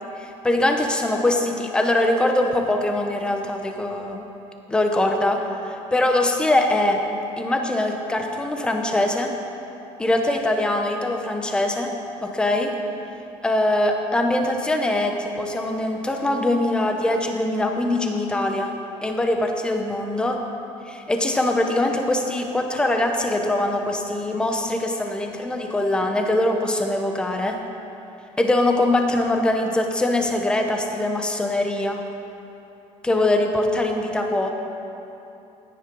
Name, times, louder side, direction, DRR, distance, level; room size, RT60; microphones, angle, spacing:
voice 1, 0.2-4.2 4.7-7.0 7.4-9.3 10.0-11.9 12.2-12.8 13.4-18.7 19.0-20.4 20.9-27.6 28.4-32.0 33.0-34.5, left 1 dB, 10° left, 3 dB, 0.9 m, -22 dB
17.0 x 10.0 x 5.4 m, 2.9 s
cardioid pair, 175°, 12 cm